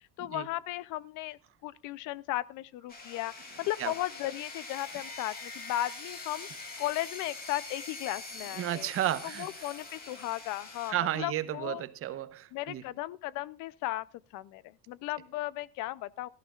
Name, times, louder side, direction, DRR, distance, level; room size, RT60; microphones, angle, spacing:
voice 1, 0.2-6.5 6.8-8.9 9.2-11.8 12.5-14.1 14.3-16.3, left 16 dB, 55° left, 0.6 m, -36 dB
sound 1, 2.9-10.9, left 3 dB, 25° left, 2.7 m, -44 dB
voice 2, 8.5-9.5 10.9-12.8, right 12 dB, 40° right, 1.0 m, -33 dB
17.5 x 14.5 x 2.4 m
cardioid pair, 155°, 36 cm